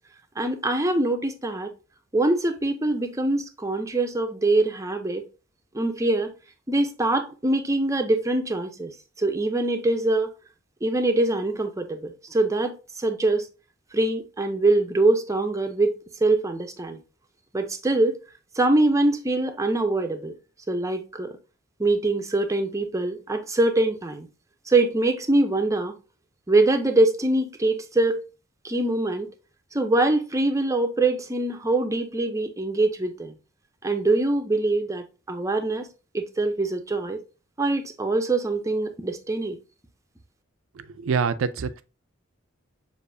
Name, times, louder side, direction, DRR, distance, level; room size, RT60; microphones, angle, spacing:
voice 1, 0.4-1.7 2.1-5.2 5.7-6.3 6.7-8.9 9.2-10.3 10.8-13.5 13.9-17.0 17.5-18.2 18.6-20.3 20.7-21.4 21.8-24.3 24.7-26.0 26.5-28.2 28.6-29.3 29.7-33.3 33.8-35.9 36.1-37.2 37.6-39.6, right 2 dB, 15° right, 0.5 m, -23 dB
voice 2, 40.7-41.8, right 6 dB, 70° right, 0.4 m, -26 dB
6.7 x 2.5 x 2.6 m
head